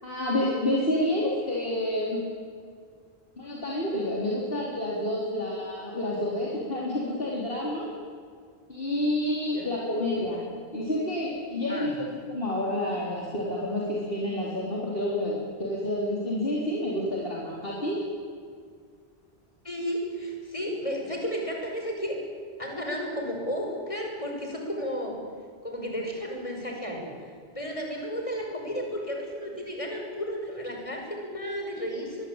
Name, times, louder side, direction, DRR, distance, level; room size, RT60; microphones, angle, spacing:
voice 1, 0.0-2.2 3.4-7.9 8.7-10.4 10.7-18.0, left 1 dB, 60° left, -4 dB, 4.2 m, -29 dB
voice 2, 19.6-22.2 22.6-25.2 25.6-27.1 27.5-32.2, equal, 30° left, 1 dB, 5.9 m, -33 dB
24.5 x 21.0 x 8.9 m, 2.1 s
omnidirectional pair, 1.1 m